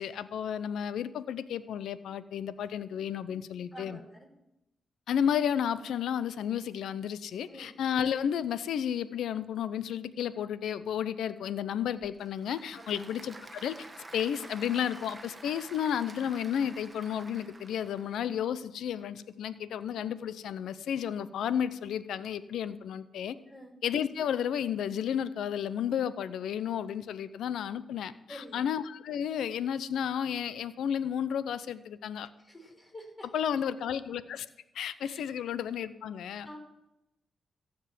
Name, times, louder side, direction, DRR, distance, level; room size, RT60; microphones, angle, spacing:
voice 1, 0.0-4.0 5.1-13.9 14.1-23.4 23.8-32.3 33.3-34.5 34.7-36.5, left 9 dB, 80° left, 15 dB, 0.6 m, -32 dB
voice 2, 3.7-4.3 7.5-7.8 12.7-13.1 23.5-23.7 28.3-28.7 32.4-33.3 35.0-35.2 36.4-36.6, equal, 30° left, -1 dB, 4.8 m, -48 dB
Applause / Crowd, 11.8-18.3, right 2 dB, 30° right, 1.3 m, -49 dB
15.0 x 5.3 x 9.2 m, 0.90 s
supercardioid pair, 55°, 0 cm